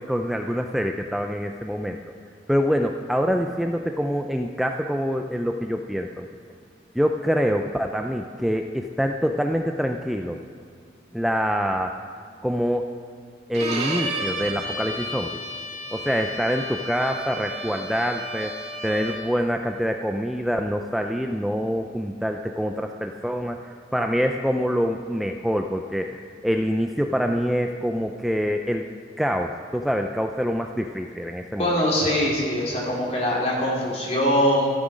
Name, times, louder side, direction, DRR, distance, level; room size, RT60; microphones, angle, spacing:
voice 1, 0.0-2.0 2.5-6.3 6.9-10.4 11.1-11.9 12.4-12.9 13.5-15.4 15.9-18.5 18.8-23.6 23.9-28.9 29.2-31.8, equal, ahead, 4 dB, 0.4 m, -25 dB
Bowed string instrument, 13.5-19.4, right 1 dB, 40° right, 2.0 m, -32 dB
voice 2, 31.6-34.7, equal, 35° left, -4 dB, 3.5 m, -22 dB
13.5 x 13.5 x 5.1 m, 2.3 s
head